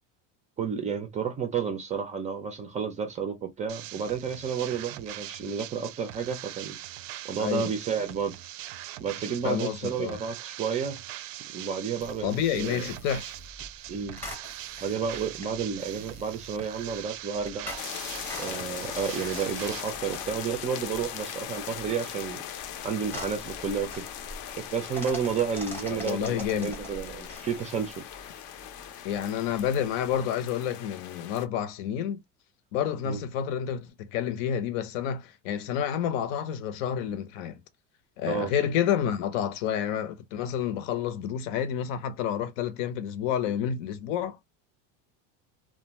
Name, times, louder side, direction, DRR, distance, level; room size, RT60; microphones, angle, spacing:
voice 1, 0.6-7.0 7.2-8.3 9.0-11.0 11.5-12.9 13.9-14.2 14.8-17.7 18.4-24.1 24.7-27.9 33.0-33.2 38.3-38.5, right 6 dB, 20° right, 0.3 m, -31 dB
sound 1, 3.7-19.8, right 14 dB, 80° right, 0.5 m, -42 dB
voice 2, 7.4-7.7 9.4-10.2 12.2-13.3 25.9-26.7 29.0-32.2 32.7-37.6 38.2-44.4, left 9 dB, 80° left, 0.7 m, -29 dB
sound 2, 12.0-30.2, left 1 dB, 5° left, 0.8 m, -45 dB
sound 3, 17.8-31.5, left 10 dB, 55° left, 0.5 m, -40 dB
2.5 x 2.2 x 2.9 m
cardioid pair, 155°, 38 cm